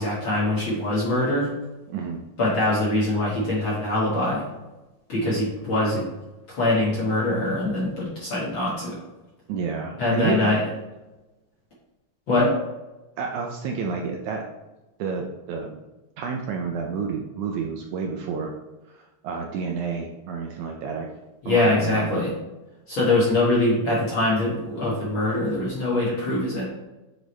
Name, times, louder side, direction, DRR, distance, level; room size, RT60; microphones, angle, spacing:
voice 1, 0.0-1.5 2.4-4.4 5.1-6.1 6.5-9.0 10.0-10.6 12.3-12.5 21.4-22.3 22.9-26.6, left 2 dB, 50° left, -7 dB, 1.6 m, -23 dB
voice 2, 1.9-2.2 9.5-10.5 13.2-14.4 15.0-15.8 16.2-18.5 18.9-21.1 21.5-22.3, right 5 dB, 80° right, 2 dB, 1.8 m, -30 dB
8.0 x 3.9 x 3.1 m, 1.1 s
omnidirectional pair, 3.9 m